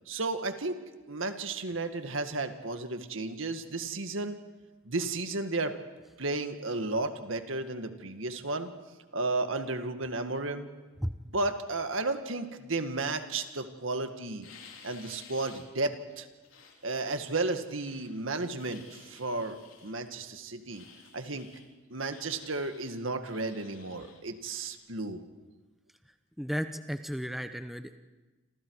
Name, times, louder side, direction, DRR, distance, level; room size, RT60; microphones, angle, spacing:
voice 1, 0.1-0.8 1.1-4.4 4.9-5.8 6.2-8.7 9.1-10.7 11.3-14.5 14.8-16.3 16.8-20.8 21.1-21.5 21.9-25.2, right 2 dB, 70° right, 7 dB, 1.8 m, -33 dB
sound 1, 14.4-15.7 16.1-18.2 18.6-20.0 20.7-21.7 22.1-22.9 23.2-24.7, left 6 dB, 75° left, 3.9 m, -54 dB
voice 2, 26.4-28.0, equal, ahead, 8 dB, 0.8 m, -34 dB
29.0 x 26.5 x 4.8 m, 1.2 s
head